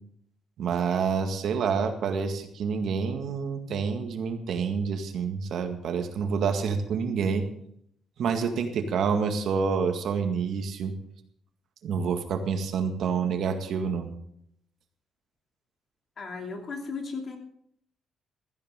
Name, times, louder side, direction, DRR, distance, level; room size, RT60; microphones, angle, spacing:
voice 1, 0.6-7.5 8.2-10.9 11.8-14.1, right 6 dB, 70° right, 6 dB, 1.9 m, -28 dB
voice 2, 16.2-17.4, left 4 dB, 50° left, 3 dB, 2.9 m, -35 dB
15.5 x 14.0 x 3.8 m, 0.71 s
cardioid pair, 90°, 0 cm